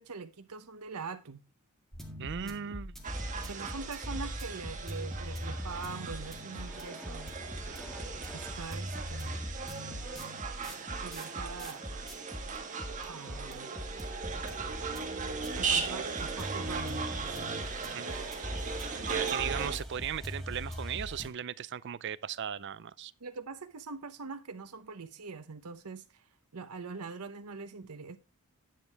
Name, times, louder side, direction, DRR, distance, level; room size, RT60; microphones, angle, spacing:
voice 1, 0.0-1.4 2.4-2.5 3.4-7.3 8.3-9.5 11.0-11.8 13.1-13.7 15.6-17.4 23.2-26.0 26.5-28.2, right 4 dB, 90° right, 0.8 m, -43 dB
sound 1, 1.9-21.3, equal, ahead, 1.8 m, -41 dB
voice 2, 2.2-2.9 3.4-3.5 17.9-18.2 19.0-23.1, right 8 dB, 50° right, 0.4 m, -37 dB
sound 2, 3.0-19.8, right 5 dB, 35° right, 1.5 m, -38 dB
10.5 x 8.3 x 3.4 m
head